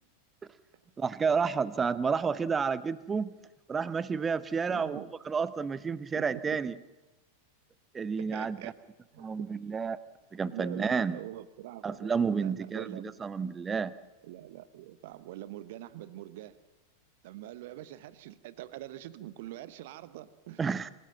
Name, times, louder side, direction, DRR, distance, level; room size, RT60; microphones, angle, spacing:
voice 1, 1.0-3.3 3.7-6.7 7.9-8.7 9.2-10.0 10.3-11.2 11.8-13.9 20.6-20.9, right 5 dB, 15° right, 17 dB, 0.8 m, -30 dB
voice 2, 4.7-5.1 6.2-6.4 8.2-8.7 9.1-9.3 10.5-13.1 14.2-16.6 17.2-20.6, right 14 dB, 50° right, 15 dB, 1.0 m, -44 dB
26.0 x 14.5 x 7.3 m, 1.1 s
figure-of-eight pair, 90°, 0 cm